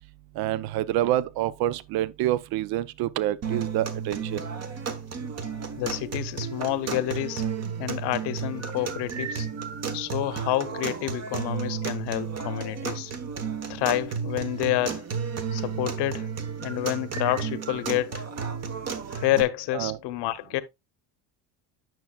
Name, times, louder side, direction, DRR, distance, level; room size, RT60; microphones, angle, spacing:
voice 1, 0.4-4.4 19.7-20.0, right 13 dB, 55° right, 0.6 m, -27 dB
sound 1, 3.4-19.4, right 6 dB, 35° right, 1.1 m, -33 dB
voice 2, 5.8-7.4 7.8-9.5 9.9-13.1 13.7-15.0 15.5-16.3 16.6-18.3 19.1-20.6, left 15 dB, 65° left, 0.9 m, -28 dB
9.2 x 6.0 x 2.3 m
cardioid pair, 120°, 44 cm